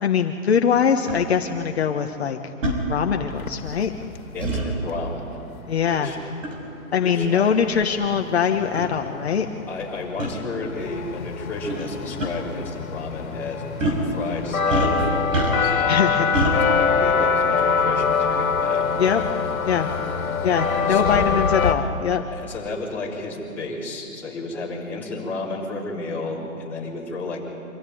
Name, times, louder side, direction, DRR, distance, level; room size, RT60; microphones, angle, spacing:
voice 1, 0.0-2.4 2.9-3.9 5.7-6.1 6.9-9.5 15.9-16.3 19.0-19.2 19.6-19.9 20.4-22.2, left 7 dB, 50° left, 4 dB, 1.2 m, -22 dB
sound 1, 1.1-1.2 2.6-2.8 4.4-4.7 6.4-6.6 7.5-7.6 8.4-8.5 8.7-8.9 10.2-10.3 11.7-11.9 12.2-12.3 13.8-14.1 14.7-15.8 16.3-16.6, right 1 dB, 65° right, 6.1 m, -24 dB
sound 2, 3.3-4.2 7.2-7.3 7.5-21.7, left 5 dB, 80° left, 2.2 m, -25 dB
voice 2, 4.3-5.4 5.8-6.3 7.0-7.5 9.7-19.0 20.6-21.3 22.3-27.4, left 3 dB, 5° left, -9 dB, 3.7 m, -32 dB
25.0 x 14.5 x 9.3 m, 2.8 s
hypercardioid pair, 170°, 41 cm